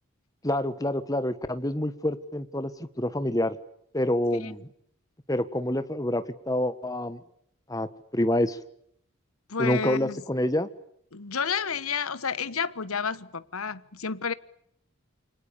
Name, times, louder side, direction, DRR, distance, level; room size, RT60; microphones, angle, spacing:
voice 1, 0.4-3.6 3.9-4.7 5.3-7.2 7.7-8.6 9.6-10.7, left 1 dB, 15° left, 1.5 m, -27 dB
voice 2, 9.5-10.2 11.1-14.3, left 6 dB, 90° left, 1.3 m, -30 dB
29.0 x 26.0 x 7.0 m
head